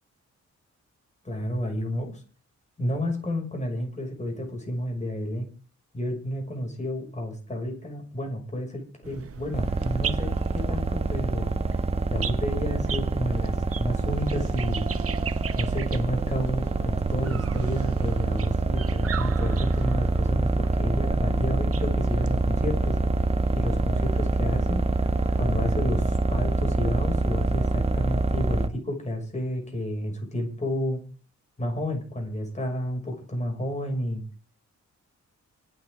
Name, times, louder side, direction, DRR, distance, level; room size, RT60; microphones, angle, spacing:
voice 1, 1.2-2.2 2.8-5.5 5.9-11.5 12.1-14.9 15.5-23.0 23.5-24.8 25.4-31.0 31.6-34.2, left 1 dB, 25° left, 2 dB, 6.1 m, -31 dB
sound 1, 9.0-25.7, right 7 dB, 50° right, 1.0 m, -39 dB
sound 2, 9.5-28.7, right 3 dB, 20° right, 1.1 m, -26 dB
25.5 x 9.1 x 3.7 m, 0.37 s
wide cardioid pair, 150°, 30 cm